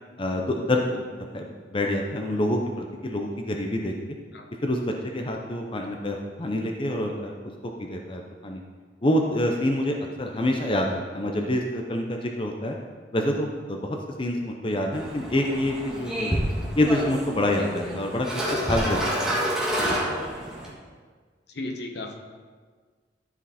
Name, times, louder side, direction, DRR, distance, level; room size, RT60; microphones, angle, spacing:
voice 1, 0.2-1.0 1.3-3.9 4.6-7.3 7.8-8.6 9.0-12.8 13.1-16.4 16.8-18.3 18.7-19.3 19.8-20.0, left 1 dB, 30° left, 2 dB, 0.7 m, -27 dB
sound 1, 14.9-20.7, equal, 5° right, 1.7 m, -28 dB
voice 2, 21.5-22.2, left 2 dB, 65° left, 3 dB, 1.0 m, -34 dB
13.0 x 5.0 x 4.2 m, 1.5 s
head